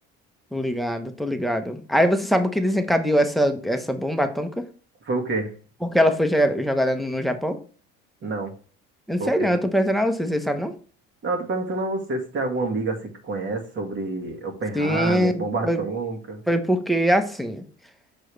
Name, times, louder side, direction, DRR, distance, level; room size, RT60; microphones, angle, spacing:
voice 1, 0.5-4.6 5.9-7.6 9.1-10.7 14.7-15.8 16.5-17.6, equal, ahead, 7 dB, 0.9 m, -22 dB
voice 2, 5.0-5.5 8.2-8.5 9.2-9.5 11.2-16.4, right 3 dB, 40° right, 3 dB, 1.9 m, -28 dB
6.5 x 4.6 x 3.3 m, 0.40 s
supercardioid pair, 105°, 30 cm